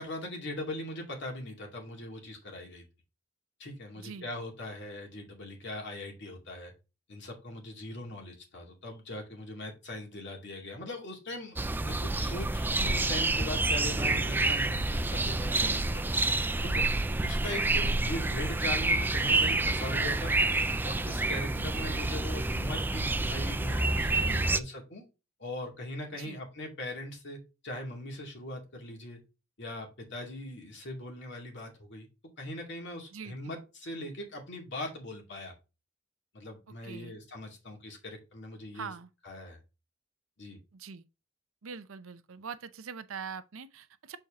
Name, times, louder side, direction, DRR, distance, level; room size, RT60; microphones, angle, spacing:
voice 1, 0.0-2.9 3.6-6.7 7.1-11.6 11.8-16.0 16.6-16.9 17.2-20.4 20.8-25.1 25.4-29.2 29.6-32.1 32.4-35.5 36.3-38.9 39.2-39.6 40.4-40.6, left 1 dB, 60° left, 2.3 m, -40 dB
voice 2, 4.0-4.3 15.5-15.8 18.2-18.4 21.5-21.8 24.2-24.5 26.2-26.4 33.1-33.6 36.7-37.1 38.7-39.1 40.7-41.0 41.6-44.2, right 6 dB, 90° right, 0.6 m, -43 dB
sound 1, 11.6-24.6, right 2 dB, 10° right, 0.3 m, -28 dB
7.0 x 4.5 x 3.6 m
head